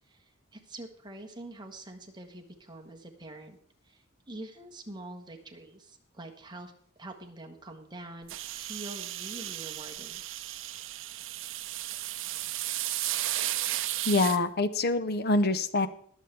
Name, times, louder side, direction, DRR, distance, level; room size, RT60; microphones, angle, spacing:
voice 1, 0.0-3.6 3.8-6.7 7.0-10.2, right 1 dB, 20° right, 2 dB, 1.4 m, -45 dB
sound 1, 8.3-14.4, right 14 dB, 65° right, 0.6 m, -34 dB
voice 2, 14.0-15.9, left 2 dB, 50° left, 13 dB, 0.8 m, -25 dB
21.5 x 7.4 x 3.4 m, 0.62 s
head